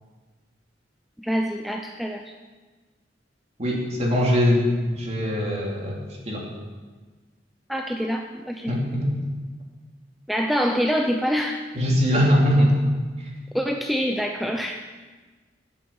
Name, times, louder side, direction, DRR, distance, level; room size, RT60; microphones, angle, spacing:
voice 1, 1.2-2.3 7.7-8.8 10.3-11.7 13.5-14.8, equal, ahead, 3 dB, 0.5 m, -25 dB
voice 2, 3.6-4.7 4.9-6.0 6.3-6.4 8.7-9.2 11.7-12.7, equal, 35° right, -2 dB, 2.8 m, -21 dB
10.5 x 8.5 x 7.1 m, 1.3 s
head